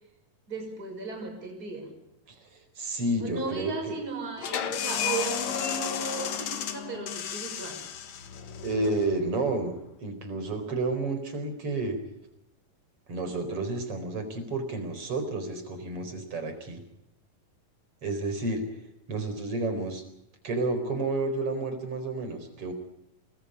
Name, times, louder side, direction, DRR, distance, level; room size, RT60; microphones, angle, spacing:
voice 1, 0.5-1.9 3.2-7.8, right 3 dB, 25° right, 1 dB, 6.7 m, -36 dB
voice 2, 2.3-4.0 8.6-12.0 13.1-16.8 18.0-18.7 19.1-20.0 20.4-22.7, right 2 dB, 40° right, 7 dB, 5.1 m, -31 dB
sound 1, 4.4-9.8, left 9 dB, 60° left, 2.6 m, -33 dB
29.5 x 20.5 x 5.4 m, 0.85 s
omnidirectional pair, 4.0 m